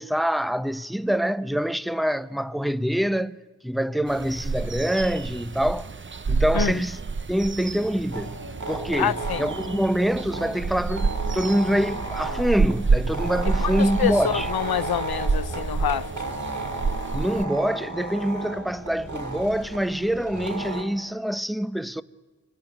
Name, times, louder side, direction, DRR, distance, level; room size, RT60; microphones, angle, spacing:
voice 1, 0.0-3.4 3.6-5.9 6.3-7.0 7.3-8.4 8.7-14.5 17.1-22.0, equal, ahead, 0.8 m, -25 dB
sound 1, 4.1-17.5, right 4 dB, 30° right, 0.7 m, -29 dB
sound 2, 8.1-20.8, right 2 dB, 50° right, 6.3 m, -34 dB
voice 2, 9.0-9.5 13.6-16.3, left 10 dB, 70° left, 0.7 m, -27 dB
24.5 x 22.5 x 9.4 m
cardioid pair, 55°, 38 cm